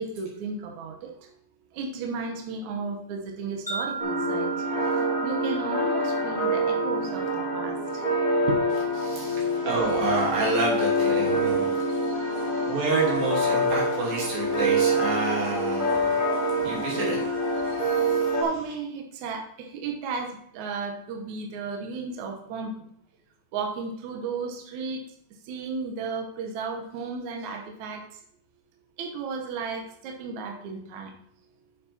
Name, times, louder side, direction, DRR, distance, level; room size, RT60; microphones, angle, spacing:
voice 1, 0.0-1.3 1.7-4.5 4.9-8.0 8.5-8.6 11.9-12.7 17.6-22.9 23.5-25.1 25.4-28.2 29.0-31.1, right 4 dB, 65° right, 2 dB, 2.3 m, -34 dB
Wind chime, 3.7-7.9, right 5 dB, 5° right, 1.5 m, -37 dB
sound 1, 4.0-18.4, equal, 40° left, 0.6 m, -26 dB
voice 2, 9.0-18.4, right 3 dB, 85° right, -3 dB, 4.6 m, -30 dB
8.4 x 7.6 x 4.3 m, 0.67 s
omnidirectional pair, 4.1 m